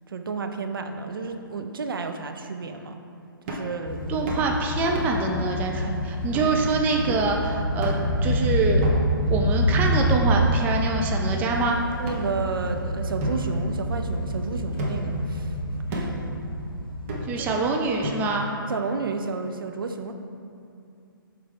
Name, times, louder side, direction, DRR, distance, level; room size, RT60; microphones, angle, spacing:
voice 1, 0.1-3.0 3.5-4.4 12.0-15.5 15.9-16.2 17.4-17.5 18.7-20.1, right 4 dB, 70° right, 6 dB, 0.5 m, -31 dB
sound 1, 3.5-3.8 4.3-4.5 5.0-5.3 5.8-5.9 6.3-6.6 7.1-7.4 7.8-8.2 8.8-9.3 9.9-10.6 11.4-11.5 12.1-12.8 13.2-14.3 14.8-15.2 15.9-16.3 17.1-17.5 18.0-18.5, equal, 35° right, 1.1 m, -34 dB
sound 2, 3.9-17.7, equal, 70° left, 0.9 m, -27 dB
voice 2, 4.1-8.8 9.3-11.8 17.2-18.5, right 3 dB, 15° right, 1 dB, 0.4 m, -25 dB
8.7 x 3.3 x 3.5 m, 2.5 s
figure-of-eight pair, 130°, 12 cm